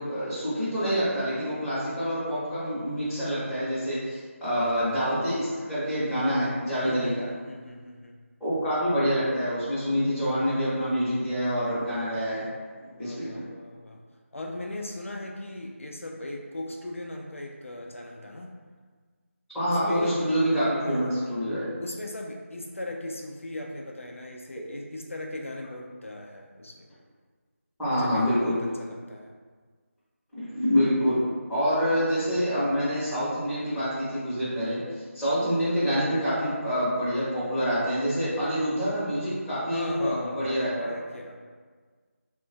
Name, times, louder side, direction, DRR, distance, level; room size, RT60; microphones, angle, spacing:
voice 1, 0.0-7.2 8.4-12.4 13.0-13.4 19.5-21.7 27.8-28.5 30.4-31.2 31.5-40.9, equal, ahead, -20 dB, 0.6 m, -26 dB
voice 2, 6.8-8.2 12.9-14.0 14.3-18.5 19.7-20.1 20.8-21.4 21.8-26.9 27.9-29.3 39.7-41.4, left 1 dB, 65° left, 1 dB, 0.3 m, -38 dB
3.0 x 2.1 x 2.6 m, 1.5 s
figure-of-eight pair, 165°, 8 cm